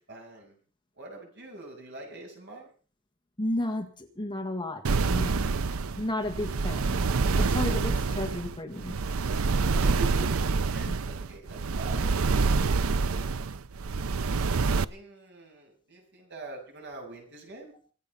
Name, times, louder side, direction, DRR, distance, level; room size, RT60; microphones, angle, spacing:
voice 1, 0.1-0.6 1.0-2.7 9.8-10.3 10.6-12.1 14.4-17.7, right 2 dB, 55° right, 1 dB, 7.4 m, -44 dB
voice 2, 3.4-5.5 6.0-7.0 7.4-9.0, left 1 dB, 25° left, 5 dB, 1.8 m, -33 dB
sound 1, 4.8-14.8, right 4 dB, 85° right, 0.6 m, -27 dB
25.0 x 8.8 x 5.6 m, 0.41 s
head